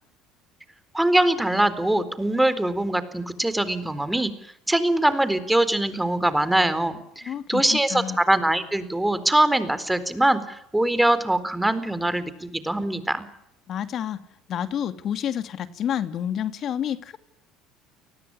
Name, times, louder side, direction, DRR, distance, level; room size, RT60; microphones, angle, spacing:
voice 1, 0.9-4.3 4.7-13.3, right 1 dB, 5° right, 13 dB, 4.0 m, -23 dB
voice 2, 7.2-8.2 13.7-14.2 14.5-17.2, left 9 dB, 50° left, 10 dB, 2.4 m, -29 dB
30.0 x 20.0 x 9.9 m, 0.77 s
supercardioid pair, 85°, 0 cm